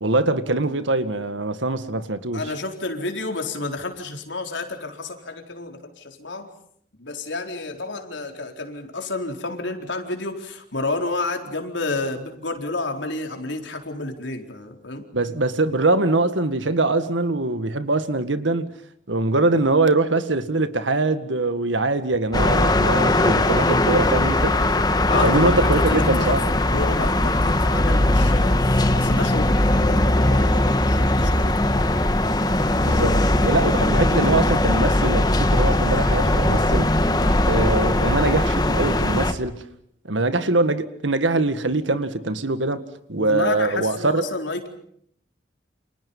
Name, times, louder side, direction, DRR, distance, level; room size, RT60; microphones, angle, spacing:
voice 1, 0.0-2.4 15.1-18.7 19.1-24.6 25.2-26.4 32.8-36.9 37.5-39.6 40.1-42.8 43.1-44.2, right 2 dB, 90° right, 1.9 m, -22 dB
voice 2, 2.3-6.5 7.0-15.0 25.1-31.6 33.1-33.3 36.2-36.4 37.2-37.5 43.2-44.7, left 2 dB, 80° left, 4.3 m, -30 dB
sound 1, 22.3-39.3, left 1 dB, 20° left, 1.5 m, -19 dB
29.5 x 27.5 x 5.6 m
head